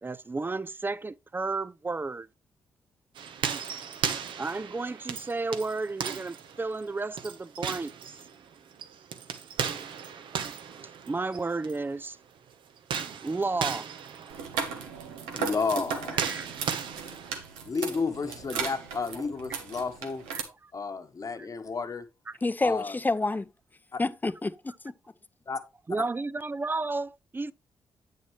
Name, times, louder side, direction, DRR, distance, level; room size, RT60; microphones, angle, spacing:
voice 1, 0.0-2.3 4.4-7.9 11.1-12.2 13.2-13.9 16.1-16.7 18.5-18.6 20.3-20.7 22.3-22.4 25.9-27.5, right 3 dB, 25° right, 0.5 m, -32 dB
sound 1, 3.2-11.8 12.8-17.4, right 7 dB, 70° right, 0.9 m, -36 dB
sound 2, 14.3-20.4, right 6 dB, 90° right, 1.1 m, -36 dB
voice 2, 15.3-16.3 17.6-20.2 20.7-22.1 22.6-23.0 23.9-24.0 25.5-25.6, left 4 dB, 40° left, 1.2 m, -32 dB
voice 3, 22.4-23.5 24.0-24.9, left 2 dB, 20° left, 0.7 m, -28 dB
8.3 x 6.5 x 3.2 m
hypercardioid pair, 45°, 9 cm